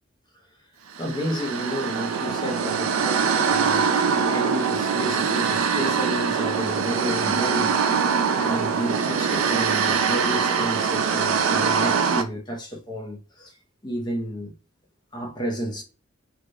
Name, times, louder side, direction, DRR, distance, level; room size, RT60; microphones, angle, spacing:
voice 1, 1.0-7.8 8.3-13.5 13.8-14.5 15.1-15.8, equal, 20° left, 0.8 m, -31 dB
sound 1, 1.0-12.2, right 6 dB, 90° right, 0.4 m, -23 dB
3.2 x 2.5 x 2.6 m
head